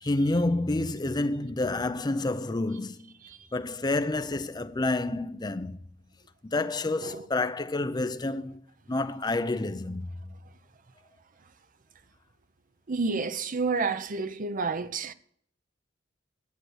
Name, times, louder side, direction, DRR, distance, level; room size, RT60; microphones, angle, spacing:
voice 1, 0.0-3.1 3.5-5.8 6.4-8.6 8.9-10.0, left 2 dB, 20° left, 0.6 m, -29 dB
voice 2, 12.9-15.1, right 4 dB, 45° right, 0.7 m, -30 dB
10.0 x 8.0 x 6.5 m
head